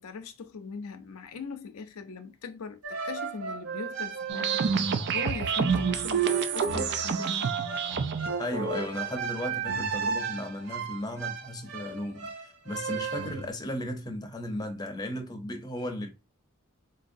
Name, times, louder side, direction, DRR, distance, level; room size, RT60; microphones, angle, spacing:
voice 1, 0.0-7.6, left 5 dB, 90° left, 0.5 m, -41 dB
sound 1, 2.8-13.5, right 5 dB, 75° right, 0.8 m, -34 dB
sound 2, 4.3-8.3, right 7 dB, 50° right, 0.4 m, -28 dB
voice 2, 8.4-16.1, left 1 dB, 20° left, 0.6 m, -35 dB
3.9 x 2.6 x 2.6 m
head